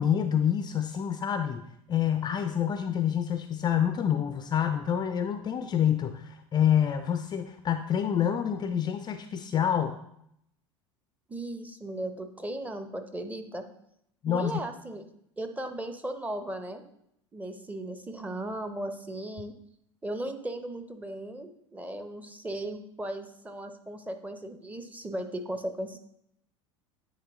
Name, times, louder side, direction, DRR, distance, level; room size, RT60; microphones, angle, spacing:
voice 1, 0.0-1.6 1.9-10.0 14.2-14.5, left 9 dB, 25° left, 9 dB, 0.4 m, -27 dB
voice 2, 11.3-13.7 14.3-15.0 15.4-16.8 17.3-19.5 20.0-26.0, right 1 dB, 10° right, 7 dB, 0.7 m, -36 dB
9.4 x 3.2 x 3.6 m, 0.75 s
hypercardioid pair, 85°, 16 cm